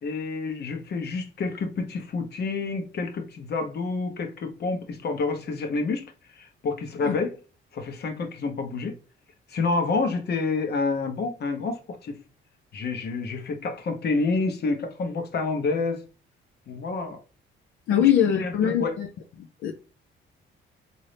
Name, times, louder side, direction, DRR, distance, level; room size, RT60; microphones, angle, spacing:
voice 1, 0.0-6.1 6.3-7.3 7.7-8.9 9.5-12.2 12.7-16.0 16.7-17.2 17.9-18.1 18.4-18.9, left 3 dB, 55° left, 1.0 m, -28 dB
voice 2, 17.9-19.1 19.6-19.7, left 9 dB, 80° left, 0.5 m, -22 dB
3.9 x 2.7 x 3.3 m
cardioid pair, 90°, 20 cm